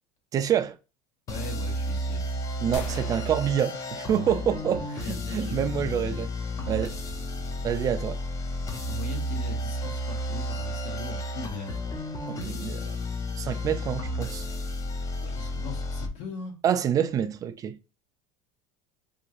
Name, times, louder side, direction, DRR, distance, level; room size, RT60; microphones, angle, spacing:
voice 1, 0.3-0.8 2.6-6.3 6.7-7.0 7.6-8.2 12.3-13.0 13.4-14.5 16.6-17.8, right 9 dB, 25° right, 0.3 m, -27 dB
voice 2, 1.3-2.3 4.6-6.3 8.9-11.8 15.2-16.6, left 4 dB, 55° left, 1.2 m, -40 dB
sound 1, 1.3-16.1, left 1 dB, 25° left, 0.5 m, -32 dB
sound 2, 2.7-4.6, left 3 dB, 85° left, 0.6 m, -42 dB
2.8 x 2.4 x 2.9 m
supercardioid pair, 140°, 14 cm